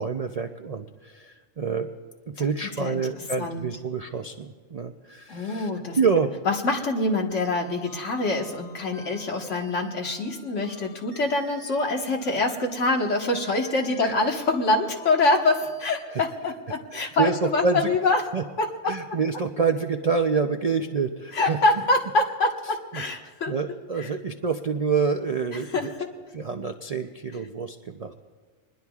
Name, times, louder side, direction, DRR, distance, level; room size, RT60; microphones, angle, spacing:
voice 1, 0.0-1.9 2.3-5.7 6.0-6.3 14.0-14.1 16.1-16.2 16.9-17.9 18.3-18.4 18.8-21.6 22.9-23.0 23.5-25.9 26.3-28.1, right 5 dB, 50° right, 5 dB, 0.4 m, -27 dB
voice 2, 5.3-6.0 6.5-18.2 18.6-19.0 21.3-23.5 24.0-24.1 25.7-26.1, left 2 dB, 65° left, 2 dB, 1.8 m, -25 dB
sound 1, 7.3-16.0, left 2 dB, 85° left, 5.7 m, -49 dB
25.5 x 20.5 x 2.4 m, 1.5 s
omnidirectional pair, 1.4 m